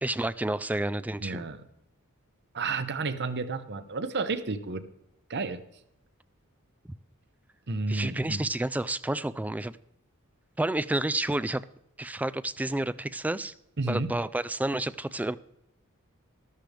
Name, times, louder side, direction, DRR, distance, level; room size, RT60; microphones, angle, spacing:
voice 1, 0.0-1.4 7.9-9.7 10.6-11.6 12.0-13.5 13.9-15.4, right 1 dB, 5° right, 16 dB, 0.3 m, -30 dB
voice 2, 1.2-1.6 2.5-4.8 5.3-5.6 7.7-8.4 13.8-14.1, right 3 dB, 50° right, 11 dB, 0.9 m, -31 dB
13.5 x 13.0 x 3.4 m, 0.82 s
head